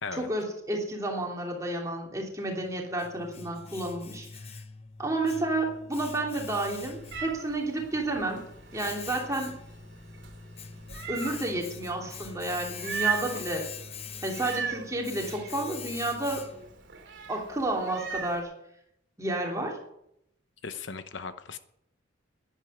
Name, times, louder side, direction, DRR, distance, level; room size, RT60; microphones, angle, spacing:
voice 1, 0.1-4.3 5.0-8.5 8.7-9.5 11.1-13.7 14.2-16.4 17.3-18.5 19.2-19.8, right 2 dB, 15° right, 0 dB, 3.0 m, -31 dB
Domestic sounds home sounds, 2.5-16.8, left 6 dB, 30° left, 0.9 m, -44 dB
sound 1, 4.5-14.9, left 1 dB, 80° left, 7.0 m, -59 dB
Meow, 6.4-18.4, right 7 dB, 60° right, 2.8 m, -39 dB
voice 2, 20.6-21.6, left 5 dB, 60° left, 10 dB, 0.9 m, -37 dB
11.0 x 10.5 x 9.5 m, 0.77 s
head